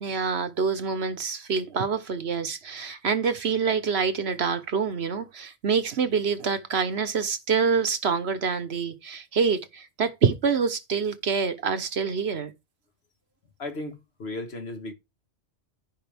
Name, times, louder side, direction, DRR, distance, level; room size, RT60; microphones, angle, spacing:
voice 1, 0.0-12.5, right 5 dB, 60° right, 1.2 m, -26 dB
voice 2, 13.6-14.9, left 2 dB, 55° left, 1.6 m, -35 dB
14.0 x 5.3 x 3.4 m
omnidirectional pair, 1.3 m